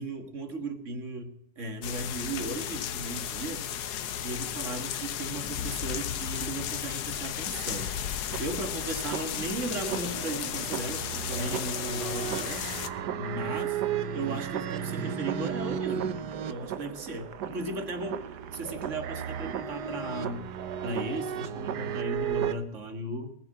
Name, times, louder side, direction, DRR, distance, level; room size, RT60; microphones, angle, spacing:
voice 1, 0.0-3.7 4.2-7.9 8.4-12.6 12.9-13.8 14.1-20.4 20.8-23.4, right 2 dB, 45° right, 7 dB, 2.0 m, -36 dB
sound 1, 1.8-12.9, left 10 dB, 75° left, 1.4 m, -34 dB
sound 2, 7.5-22.6, right 9 dB, 80° right, 1.4 m, -35 dB
20.0 x 7.7 x 7.6 m, 0.76 s
omnidirectional pair, 1.8 m